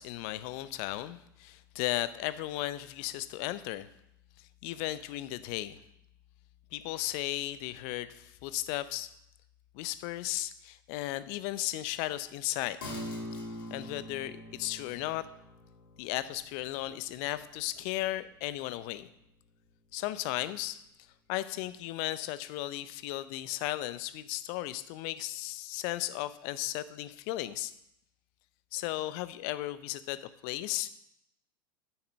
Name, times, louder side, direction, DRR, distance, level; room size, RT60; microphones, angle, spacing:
voice 1, 0.0-3.9 4.6-5.8 6.7-9.1 9.7-12.8 13.7-15.3 16.0-19.1 19.9-20.8 21.3-27.7 28.7-30.9, left 16 dB, 50° left, 15 dB, 0.6 m, -35 dB
sound 1, 12.8-19.8 20.2-20.3, left 1 dB, 70° left, 2.8 m, -45 dB
9.8 x 7.2 x 6.4 m, 0.80 s
figure-of-eight pair, 80°, 12 cm